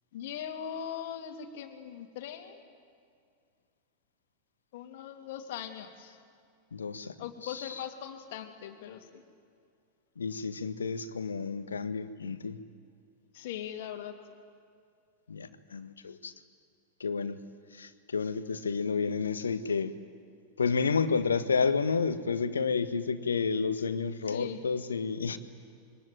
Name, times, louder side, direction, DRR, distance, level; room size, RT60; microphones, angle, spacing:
voice 1, 0.1-2.6 4.7-6.2 7.0-9.2 11.4-11.5 13.3-14.2 24.3-24.6, left 9 dB, 55° left, 5 dB, 2.6 m, -40 dB
voice 2, 6.7-7.1 7.4-7.7 10.2-12.6 15.3-16.3 17.0-17.4 17.7-20.0 20.6-25.4, left 5 dB, 70° left, 11 dB, 1.4 m, -30 dB
26.5 x 23.5 x 9.2 m, 2.2 s
figure-of-eight pair, 90°, 0 cm